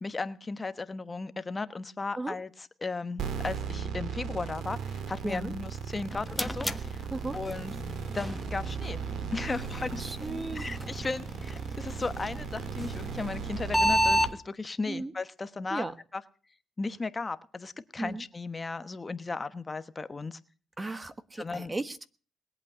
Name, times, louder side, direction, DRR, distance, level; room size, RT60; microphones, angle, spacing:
voice 1, 0.0-7.1 7.3-7.7 8.1-9.0 9.3-10.0 10.5-15.9 16.1-16.2 16.8-20.4 21.4-21.7, left 3 dB, 25° left, 12 dB, 1.1 m, -35 dB
sound 1, 3.2-14.3, right 7 dB, 75° right, 2.1 m, -37 dB
sound 2, 5.8-14.3, left 1 dB, 5° left, 1.2 m, -33 dB
voice 2, 10.0-10.7 14.9-15.1 15.7-15.9 18.0-18.2 20.8-22.1, right 2 dB, 20° right, 12 dB, 1.3 m, -36 dB
21.0 x 8.5 x 8.0 m, 0.40 s
cardioid pair, 90°, 0 cm